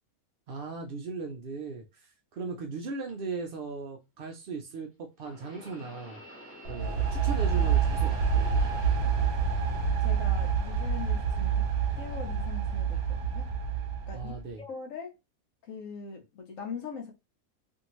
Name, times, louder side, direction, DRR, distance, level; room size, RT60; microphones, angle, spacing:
voice 1, 0.5-6.2 6.7-8.8 14.1-14.6, right 4 dB, 80° right, 0.4 m, -38 dB
sound 1, 3.1-3.2 5.2-10.2 10.6-11.4 12.1-12.3 13.2-13.3, left 1 dB, 10° left, 1.0 m, -50 dB
sound 2, 6.6-14.4, right 6 dB, 55° right, 0.8 m, -27 dB
voice 2, 10.0-11.7 12.0-13.5 14.1-15.1 15.7-17.1, left 5 dB, 70° left, 1.0 m, -41 dB
2.7 x 2.6 x 2.9 m
omnidirectional pair, 1.5 m